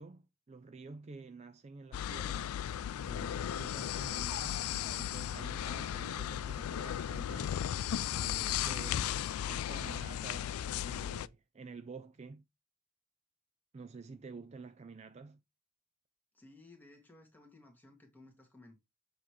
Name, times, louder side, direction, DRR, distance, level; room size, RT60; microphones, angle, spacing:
voice 1, 0.0-2.5 3.0-7.6 8.1-9.1 9.4-12.5 13.7-15.4, right 4 dB, 30° right, 0.3 m, -50 dB
sound 1, 1.9-11.3, left 10 dB, 85° left, 0.3 m, -36 dB
voice 2, 16.3-18.8, left 2 dB, 10° left, 1.7 m, -58 dB
7.4 x 3.0 x 4.8 m
head